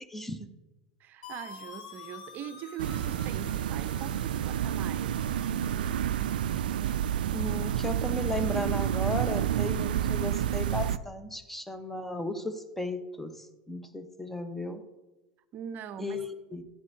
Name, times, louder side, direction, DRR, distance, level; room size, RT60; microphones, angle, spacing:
voice 1, 0.1-0.5 7.3-14.8 16.0-16.6, left 2 dB, 5° left, 1.1 m, -35 dB
voice 2, 1.0-5.2 15.5-16.2, right 9 dB, 45° right, 0.7 m, -41 dB
sound 1, 1.2-7.0, left 6 dB, 80° left, 1.5 m, -49 dB
sound 2, 2.8-11.0, right 10 dB, 75° right, 0.4 m, -29 dB
14.0 x 9.4 x 2.8 m
hypercardioid pair, 90°, 5 cm